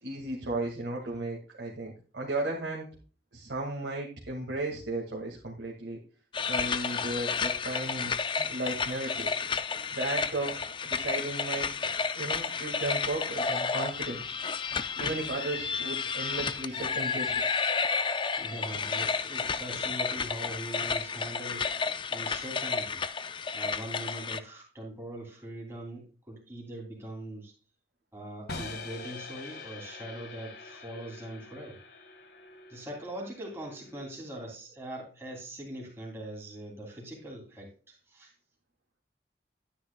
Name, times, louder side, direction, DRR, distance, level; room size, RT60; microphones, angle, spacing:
voice 1, 0.0-2.9 3.3-6.0 6.5-9.3 9.9-11.7 12.1-14.4 15.0-17.4, right 2 dB, 75° right, -2 dB, 2.0 m, -35 dB
sound 1, 6.3-24.4, left 5 dB, 25° left, 0.4 m, -31 dB
voice 2, 18.4-23.0 23.5-27.5 28.1-31.8 32.7-38.3, right 1 dB, 15° right, -2 dB, 2.8 m, -42 dB
sound 2, 28.5-34.5, left 3 dB, 60° left, 1.7 m, -45 dB
12.0 x 9.8 x 2.2 m, 0.37 s
head